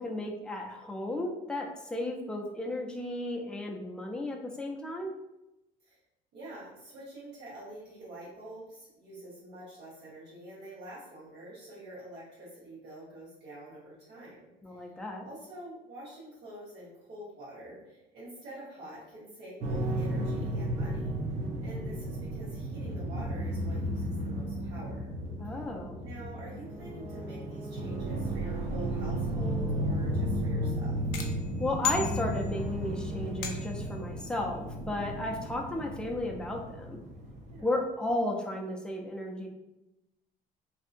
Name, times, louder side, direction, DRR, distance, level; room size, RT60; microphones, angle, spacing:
voice 1, 0.0-5.1 14.6-15.3 21.5-21.6 25.4-26.0 31.6-37.0 37.6-39.5, left 1 dB, 5° left, -1 dB, 0.4 m, -34 dB
voice 2, 6.3-14.9 15.2-21.2 21.6-25.1 26.0-31.0 37.5-37.8, right 1 dB, 75° right, -9 dB, 1.1 m, -46 dB
sound 1, 19.6-37.6, right 1 dB, 45° right, 0.6 m, -34 dB
sound 2, 31.1-32.8 33.4-34.0, left 8 dB, 90° left, 0.5 m, -36 dB
2.7 x 2.5 x 2.5 m, 0.92 s
cardioid pair, 110°, 17 cm